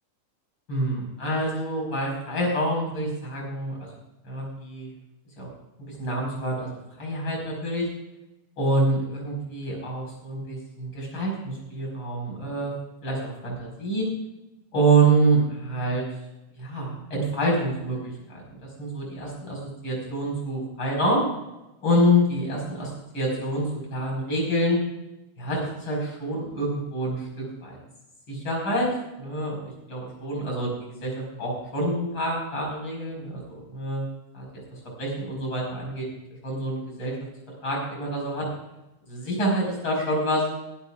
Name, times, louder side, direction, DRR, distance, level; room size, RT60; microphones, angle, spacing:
voice 1, 0.7-3.8 4.2-4.9 5.4-5.5 5.8-6.7 7.0-7.9 8.6-12.7 13.0-14.1 14.7-16.0 16.6-21.2 21.8-24.8 25.4-27.8 28.3-28.9 29.2-30.7 31.0-34.0 34.3-34.5 35.0-36.1 36.4-37.2 37.6-38.5 39.1-40.4, right 1 dB, 40° left, -2 dB, 5.6 m, -26 dB
22.5 x 11.5 x 2.5 m, 0.96 s
omnidirectional pair, 3.7 m